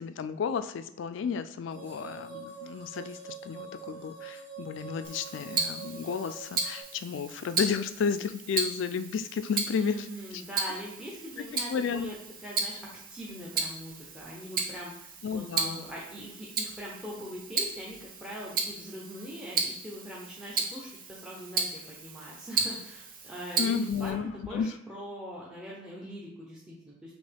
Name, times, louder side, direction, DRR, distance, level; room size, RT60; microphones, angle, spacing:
voice 1, 0.0-10.0 10.3-10.4 11.7-12.1 15.2-15.9 23.6-24.7, left 6 dB, 70° left, 11 dB, 0.3 m, -32 dB
sound 1, 1.7-6.8, right 5 dB, 65° right, 1.1 m, -45 dB
Tick-tock, 5.0-24.1, right 4 dB, 50° right, 0.7 m, -35 dB
voice 2, 9.8-12.2 12.4-12.8 13.1-27.1, equal, 5° right, -5 dB, 0.7 m, -42 dB
5.3 x 2.9 x 3.4 m, 0.77 s
head